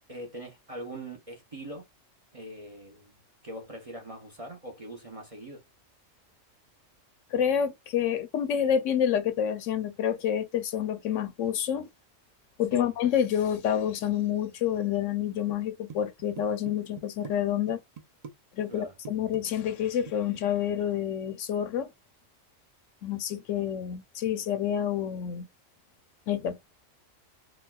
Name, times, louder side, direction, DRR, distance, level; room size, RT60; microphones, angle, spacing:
voice 1, 0.1-1.8 2.3-5.6 12.7-12.9 18.7-19.0, right 1 dB, 35° right, 0.6 m, -42 dB
voice 2, 7.3-11.9 12.6-17.8 18.6-21.9 23.0-25.5 26.3-26.6, left 9 dB, 75° left, 0.9 m, -28 dB
sound 1, 15.5-15.6 15.9-17.4 17.7-18.3 18.6-18.8 19.0-20.4, right 6 dB, 80° right, 0.3 m, -44 dB
4.1 x 2.2 x 2.2 m
omnidirectional pair, 1.3 m